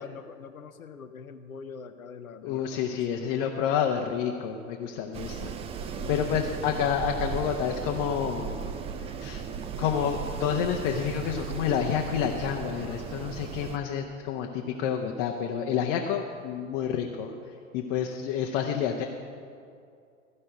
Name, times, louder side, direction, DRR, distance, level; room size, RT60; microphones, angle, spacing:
voice 1, 0.0-3.2 5.2-5.4 5.9-6.6, left 5 dB, 80° left, 9 dB, 0.8 m, -45 dB
voice 2, 2.4-5.5 6.1-8.6 9.0-9.4 9.8-17.3 17.7-19.0, left 8 dB, 40° left, 2 dB, 0.9 m, -29 dB
Wind, 5.1-13.8, right 6 dB, 15° right, 0.4 m, -36 dB
15.0 x 5.5 x 8.8 m, 2.4 s
figure-of-eight pair, 90°, 41 cm